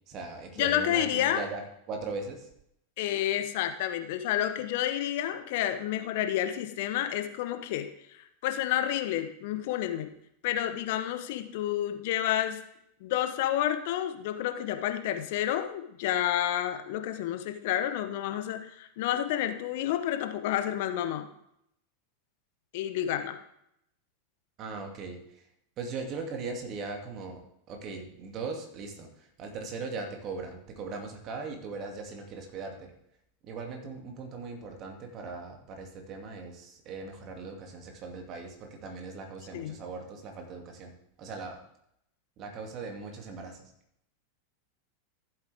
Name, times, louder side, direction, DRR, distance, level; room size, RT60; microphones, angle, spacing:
voice 1, 0.1-2.5 24.6-25.5 25.8-27.4 27.7-32.9 33.4-40.9 41.2-41.6 42.4-43.7, right 4 dB, 40° right, 2 dB, 2.4 m, -39 dB
voice 2, 0.6-1.4 3.0-10.1 10.4-12.6 13.0-21.3 22.7-23.4 39.5-39.8, left 11 dB, 60° left, 8 dB, 1.0 m, -30 dB
14.5 x 7.9 x 3.5 m, 0.76 s
figure-of-eight pair, 90°, 0 cm